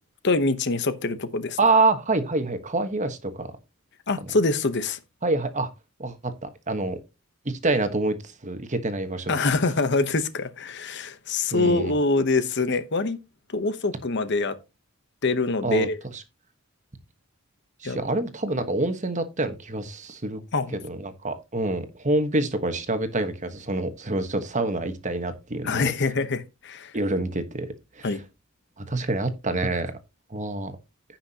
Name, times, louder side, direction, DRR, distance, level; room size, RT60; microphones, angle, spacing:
voice 1, 0.2-1.6 4.1-5.0 9.3-13.2 13.5-14.6 15.2-16.0 17.8-18.0 20.5-20.8 25.6-26.9 28.0-28.2, left 3 dB, 55° left, 1.0 m, -24 dB
voice 2, 1.6-3.5 5.2-5.7 6.0-7.0 7.4-8.1 8.4-9.4 11.5-12.0 15.6-15.9 16.1-16.2 17.8-20.4 20.8-25.9 26.9-27.7 28.0-28.1 28.8-30.0 30.3-30.7, right 2 dB, 35° right, 1.3 m, -26 dB
15.5 x 5.9 x 2.9 m
head